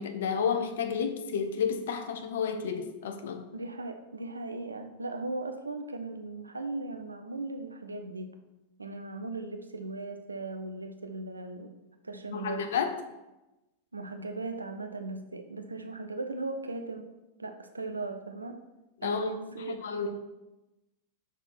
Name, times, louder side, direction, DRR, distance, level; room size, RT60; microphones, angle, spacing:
voice 1, 0.0-3.5 12.3-13.0 19.0-20.1, left 6 dB, 60° left, 0.6 m, -31 dB
voice 2, 3.5-8.3 8.8-11.7 12.0-12.6 13.9-17.1 17.4-18.6 19.0-20.2, right 2 dB, 80° right, 0.5 m, -38 dB
5.7 x 3.9 x 4.5 m
figure-of-eight pair, 90°, 0 cm